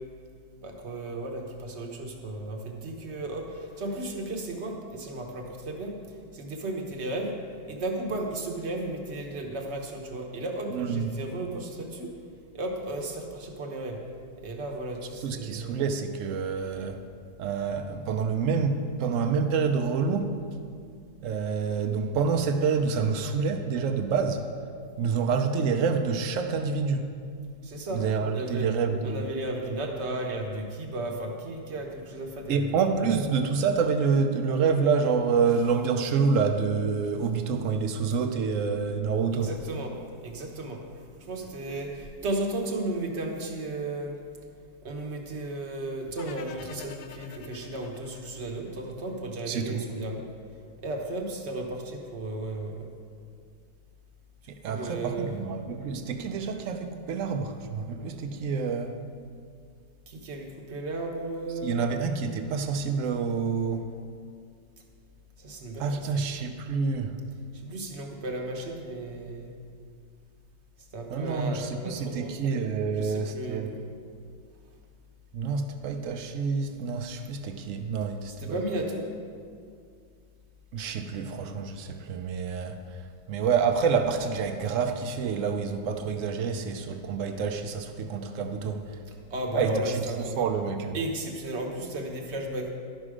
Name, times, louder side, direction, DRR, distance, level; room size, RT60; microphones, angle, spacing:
voice 1, 0.6-7.4 7.7-12.2 12.5-14.0 14.4-15.8 27.6-28.0 28.3-28.7 29.0-33.1 39.3-40.0 40.2-44.2 44.8-50.3 50.8-52.9 54.4-55.4 60.1-61.9 65.4-66.3 67.5-69.5 70.8-73.8 78.3-79.1 89.1-90.5 90.9-92.7, right 2 dB, 45° right, 2 dB, 1.1 m, -34 dB
voice 2, 10.7-11.1 15.2-17.0 17.4-20.3 21.2-24.5 25.0-27.1 27.9-29.2 32.5-39.5 49.5-49.8 54.6-59.0 61.6-63.9 65.8-67.1 71.1-73.7 75.3-78.6 80.7-83.0 83.3-89.0 89.5-90.0 90.4-91.0, right 5 dB, 75° right, 6 dB, 0.7 m, -27 dB
sound 1, 46.2-49.3, left 7 dB, 80° left, 1.3 m, -46 dB
11.5 x 6.1 x 4.9 m, 2.2 s
omnidirectional pair, 2.0 m